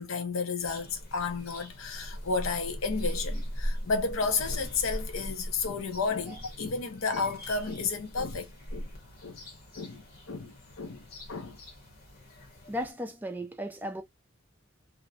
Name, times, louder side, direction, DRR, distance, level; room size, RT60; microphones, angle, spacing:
voice 1, 0.0-8.9 9.2-9.4 9.8-10.0 10.3-11.0 11.3-11.6, left 4 dB, 75° left, 0.6 m, -32 dB
sound 1, 0.6-12.9, equal, 45° left, 0.9 m, -40 dB
voice 2, 12.7-14.0, equal, 10° right, 0.3 m, -35 dB
2.5 x 2.1 x 2.6 m
head